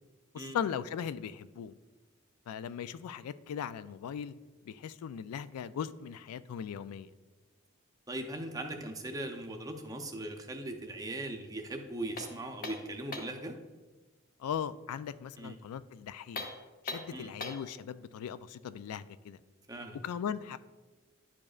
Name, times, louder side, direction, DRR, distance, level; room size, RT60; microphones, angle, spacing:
voice 1, 0.3-1.7 2.5-4.3 4.7-7.1 14.4-16.5 16.8-19.4 20.0-20.6, left 8 dB, 90° left, 16 dB, 0.3 m, -38 dB
voice 2, 8.1-13.6 15.4-15.6 17.1-17.3 19.7-20.0, right 1 dB, 15° right, 4 dB, 0.5 m, -39 dB
sound 1, 12.2-13.4 16.2-17.7, left 3 dB, 40° left, 0.7 m, -41 dB
10.5 x 5.0 x 2.4 m, 1.2 s
head